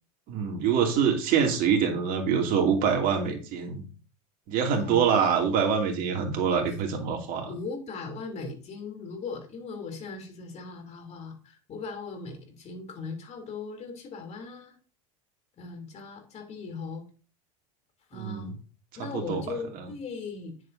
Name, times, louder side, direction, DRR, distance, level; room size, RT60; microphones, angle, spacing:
voice 1, 0.3-3.8 4.5-7.5 18.1-18.5 19.0-19.4, right 7 dB, 55° right, 3 dB, 2.6 m, -25 dB
voice 2, 4.7-5.1 7.5-14.7 15.6-17.0 18.1-18.5 18.9-20.5, left 4 dB, 40° left, 4 dB, 3.2 m, -38 dB
9.8 x 7.7 x 2.8 m, 0.36 s
hypercardioid pair, 95°, 18 cm